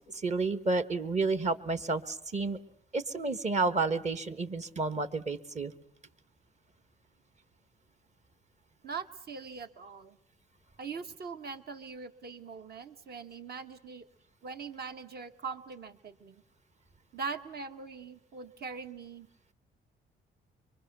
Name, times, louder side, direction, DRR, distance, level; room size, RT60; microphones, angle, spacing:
voice 1, 0.2-2.6 2.9-5.7, right 3 dB, 35° right, 12 dB, 1.4 m, -30 dB
voice 2, 8.8-10.2 10.8-14.0 14.4-16.4 17.1-19.3, right 5 dB, 50° right, 8 dB, 1.6 m, -41 dB
24.5 x 23.0 x 6.9 m, 0.70 s
cardioid pair, 90°, 20 cm